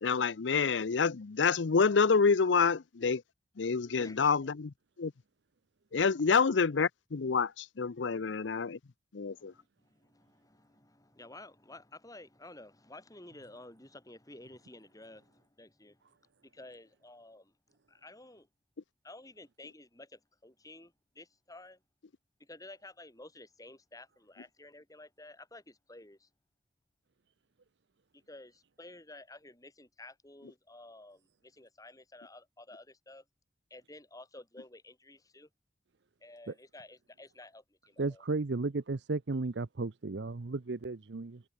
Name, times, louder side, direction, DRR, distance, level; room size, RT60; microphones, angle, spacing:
voice 1, 0.0-3.2 3.6-4.7 5.0-5.1 5.9-8.8 9.1-9.5, left 5 dB, 85° left, 0.6 m, -27 dB
voice 2, 3.8-4.5 9.3-16.1 16.4-17.6 17.9-18.5 19.0-21.8 22.4-26.3 28.1-33.3 33.7-35.5 36.2-38.2, left 2 dB, 20° left, 7.3 m, -52 dB
voice 3, 38.0-41.4, right 3 dB, 70° right, 0.7 m, -34 dB
head